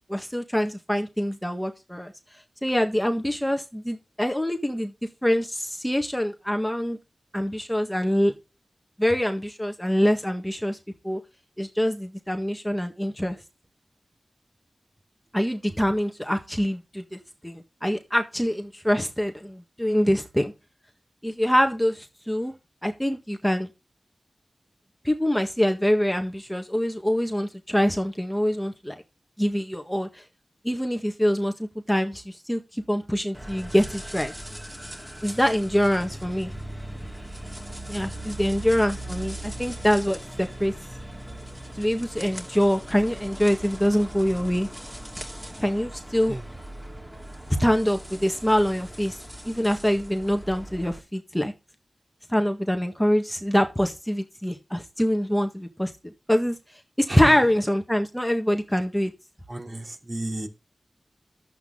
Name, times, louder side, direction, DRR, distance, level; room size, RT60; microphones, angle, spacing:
voice 1, 0.1-2.1 2.6-4.9 5.2-7.0 7.3-8.3 9.0-10.8 11.0-11.2 11.6-13.4 15.3-20.5 21.2-22.5 22.8-23.7 25.0-28.9 29.4-30.2 30.6-34.3 35.2-36.5 37.9-40.7 41.8-44.7 45.6-46.4 47.6-49.2 49.4-51.5 52.3-55.9 56.3-56.6 57.0-59.1, equal, 5° left, 5 dB, 1.6 m, -24 dB
sound 1, 33.3-51.0, right 1 dB, 10° right, 2.6 m, -39 dB
voice 2, 59.5-60.5, right 1 dB, 45° right, 2 dB, 3.3 m, -32 dB
11.5 x 8.3 x 3.9 m, 0.27 s
wide cardioid pair, 55°, 0 cm